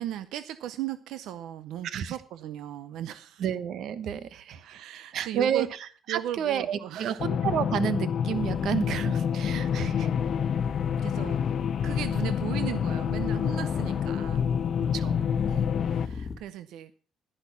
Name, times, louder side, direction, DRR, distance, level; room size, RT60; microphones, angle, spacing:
voice 1, 0.0-3.4 4.6-5.7 6.1-7.2 11.0-11.4 11.8-14.5 15.5-16.9, right 12 dB, 85° right, 13 dB, 0.7 m, -37 dB
voice 2, 1.8-2.2 3.4-4.8 5.1-10.1 14.9-15.6, right 9 dB, 60° right, 14 dB, 1.0 m, -31 dB
sound 1, 7.2-16.1, left 8 dB, 45° left, 0.8 m, -28 dB
sound 2, 8.3-16.4, left 5 dB, 25° left, 1.7 m, -39 dB
11.0 x 10.5 x 5.6 m, 0.38 s
cardioid pair, 160°, 0 cm